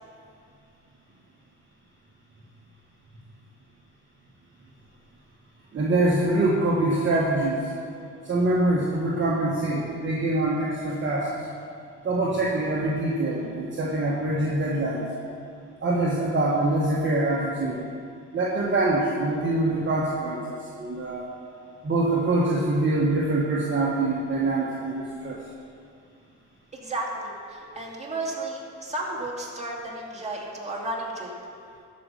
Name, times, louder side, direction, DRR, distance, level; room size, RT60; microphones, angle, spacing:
voice 1, 5.7-7.7 8.2-11.3 12.0-15.1 15.8-17.8 18.3-21.3 21.8-25.4, right 2 dB, 40° right, -5 dB, 1.5 m, -24 dB
voice 2, 26.7-31.3, right 2 dB, 20° right, -3 dB, 2.5 m, -33 dB
13.0 x 5.4 x 6.6 m, 2.4 s
cardioid pair, 90°, 30 cm